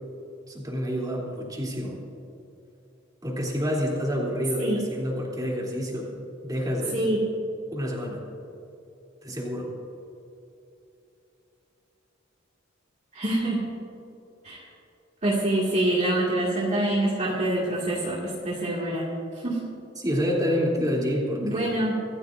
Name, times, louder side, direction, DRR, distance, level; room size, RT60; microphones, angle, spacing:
voice 1, 0.5-2.0 3.2-6.1 6.4-7.1 7.7-8.2 9.2-9.7 20.0-21.7, equal, 20° right, -3 dB, 3.2 m, -28 dB
voice 2, 4.6-4.9 6.9-7.3 13.1-13.7 14.4-14.6 15.2-19.2 19.4-19.7 21.4-22.0, right 1 dB, 35° right, -5 dB, 2.3 m, -26 dB
25.5 x 14.5 x 2.6 m, 2.8 s
head